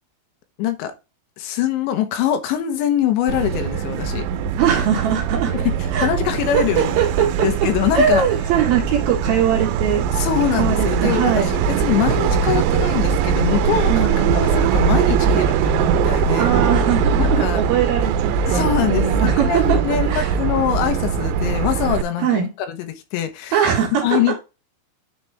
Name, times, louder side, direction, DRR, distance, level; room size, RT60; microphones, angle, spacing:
voice 1, 0.6-0.9 1.4-4.3 5.5-7.0 7.4-8.3 10.1-16.5 17.2-17.7 18.5-23.7 24.0-24.4, left 10 dB, 80° left, 3.2 m, -23 dB
Subway metro underground, 3.3-22.0, right 7 dB, 90° right, 3.1 m, -21 dB
voice 2, 4.6-5.5 5.9-6.1 6.5-7.5 7.9-10.1 10.6-11.5 13.8-14.4 16.4-20.3 22.2-22.5 23.5-24.2, right 8 dB, 60° right, 3.1 m, -21 dB
9.6 x 4.1 x 3.4 m
omnidirectional pair, 5.3 m